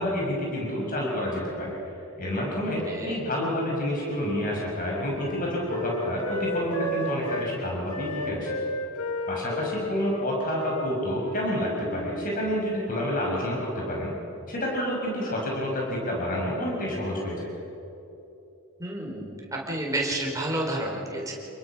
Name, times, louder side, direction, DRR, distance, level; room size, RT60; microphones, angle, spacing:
voice 1, 0.0-1.7 2.2-8.6 9.3-14.1 14.5-17.5, left 1 dB, 40° left, -2 dB, 6.2 m, -29 dB
voice 2, 2.6-3.2 18.8-19.4 19.7-21.3, right 1 dB, 15° right, -1 dB, 4.4 m, -30 dB
Wind instrument woodwind instrument, 3.6-7.5 7.9-12.3, left 1 dB, 85° left, 2.2 m, -34 dB
29.0 x 22.0 x 6.1 m, 3.0 s
head